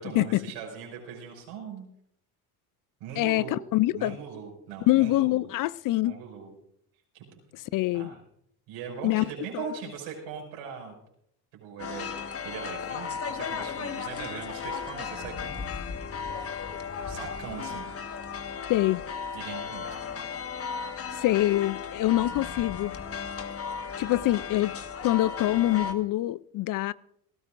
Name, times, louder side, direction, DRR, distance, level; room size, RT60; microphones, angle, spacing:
voice 1, 0.0-1.9 3.0-3.6 3.9-5.5 6.0-6.5 7.1-7.4 7.9-8.2 8.7-10.9 11.5-15.7 17.1-17.9 19.3-19.8, right 7 dB, 75° right, 6.0 m, -40 dB
voice 2, 3.2-4.2 4.9-6.2 7.7-8.1 9.0-9.2 9.5-9.7 18.7-19.0 21.1-22.9 24.0-24.7 25.0-26.9, left 16 dB, 50° left, 0.5 m, -25 dB
sound 1, 11.8-25.9, left 6 dB, 35° left, 1.5 m, -35 dB
28.0 x 13.0 x 2.6 m
supercardioid pair, 85°, 43 cm